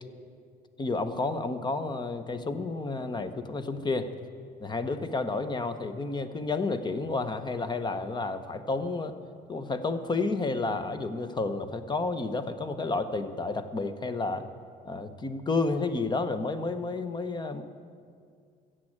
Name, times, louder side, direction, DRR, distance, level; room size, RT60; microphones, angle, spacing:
voice 1, 0.8-4.1 4.6-9.1 9.5-14.4 14.8-17.6, left 3 dB, 25° left, 10 dB, 0.9 m, -31 dB
14.5 x 7.7 x 8.7 m, 2.2 s
cardioid pair, 110°, 17 cm